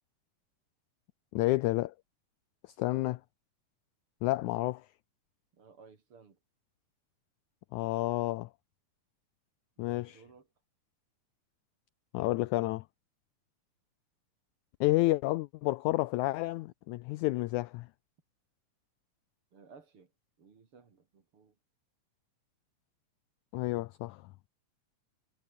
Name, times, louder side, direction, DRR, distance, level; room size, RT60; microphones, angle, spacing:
voice 1, 1.3-1.9 2.8-3.2 4.2-4.8 7.7-8.5 9.8-10.2 12.1-12.8 14.8-17.9 23.5-24.2, left 19 dB, 85° left, 1.7 m, -30 dB
voice 2, 2.9-3.2 5.5-6.4 9.8-10.5 19.5-20.1 20.4-21.6, right 5 dB, 40° right, 3.3 m, -57 dB
omnidirectional pair, 3.9 m